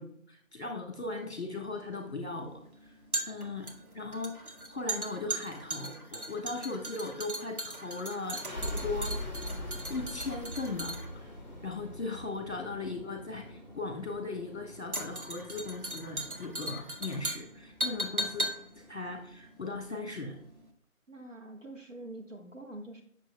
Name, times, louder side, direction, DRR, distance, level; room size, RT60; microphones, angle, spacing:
voice 1, 0.0-3.0 3.3-3.7 3.9-4.4 4.7-9.2 9.9-11.3 11.6-18.5 18.7-20.4, left 3 dB, 50° left, 4 dB, 1.3 m, -38 dB
sound 1, 1.0-20.2 20.5-20.6, right 1 dB, 85° right, 1.7 m, -38 dB
sound 2, 8.2-19.5, left 1 dB, 30° left, 0.9 m, -43 dB
voice 2, 21.1-23.0, right 1 dB, 60° right, 3 dB, 1.4 m, -45 dB
9.2 x 6.7 x 2.2 m, 0.64 s
figure-of-eight pair, 165°, 42 cm